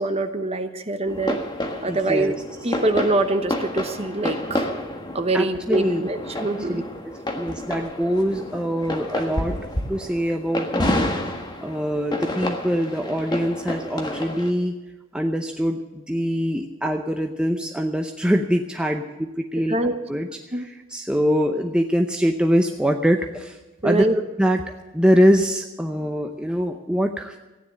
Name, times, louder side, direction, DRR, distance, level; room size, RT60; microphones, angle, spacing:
voice 1, 0.0-1.4 1.8-2.3 2.6-4.7 5.1-6.8 19.7-20.0 20.5-20.7 23.8-24.1, right 2 dB, 30° right, 8 dB, 1.0 m, -24 dB
sound 1, 1.1-14.5, left 1 dB, 20° left, 1.5 m, -29 dB
voice 2, 1.8-2.4 5.3-6.0 6.4-9.6 9.9-14.8 15.1-19.7 20.1-23.6 23.8-24.1 24.4-24.6 24.9-27.4, equal, 5° right, 3 dB, 0.7 m, -23 dB
15.0 x 9.8 x 7.6 m, 1.1 s
head